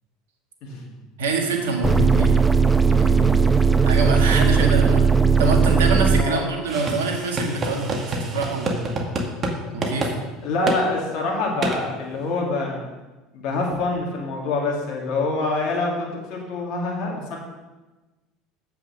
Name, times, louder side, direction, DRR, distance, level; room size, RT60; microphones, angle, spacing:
voice 1, 1.2-2.4 2.7-3.4 3.8-5.1 5.4-8.7 9.7-10.1, right 3 dB, 75° right, 2 dB, 1.8 m, -25 dB
sound 1, 1.8-6.2, right 5 dB, 10° right, 0.6 m, -17 dB
voice 2, 6.1-6.4 10.4-12.8 13.3-17.4, left 3 dB, 60° left, -2 dB, 2.1 m, -26 dB
sound 2, 6.7-9.5 9.8-10.1 10.7-10.8 11.6-11.8, right 2 dB, 35° right, 1.8 m, -27 dB
7.8 x 6.9 x 6.4 m, 1.1 s
hypercardioid pair, 75°, 0 cm